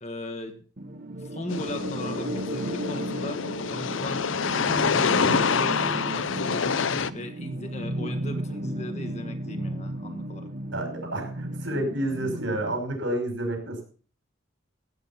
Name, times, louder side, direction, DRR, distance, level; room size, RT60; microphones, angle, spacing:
voice 1, 0.0-0.6 1.2-3.4 3.7-6.8 7.1-10.5, left 1 dB, 35° left, 6 dB, 1.7 m, -38 dB
sound 1, 0.8-12.8, right 1 dB, 45° right, 1.1 m, -34 dB
sound 2, 1.5-7.1, left 6 dB, 75° left, 0.7 m, -26 dB
voice 2, 10.7-13.8, right 1 dB, 70° right, 4 dB, 5.4 m, -29 dB
16.0 x 8.9 x 5.9 m, 0.42 s
head